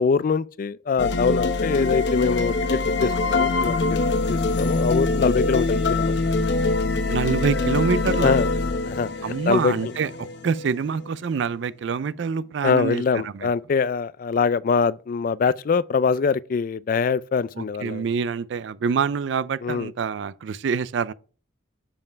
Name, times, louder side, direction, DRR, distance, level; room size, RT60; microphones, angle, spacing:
voice 1, 0.0-4.0 4.3-6.1 8.2-8.5 8.8-9.1 9.5-9.9 12.6-18.1 19.6-19.9, left 5 dB, 45° left, 0.3 m, -23 dB
sound 1, 1.0-11.1, left 3 dB, 65° left, 0.8 m, -24 dB
voice 2, 7.1-8.4 9.2-10.1 10.4-13.5 17.6-21.1, right 5 dB, 70° right, 0.4 m, -26 dB
7.1 x 5.4 x 4.6 m
head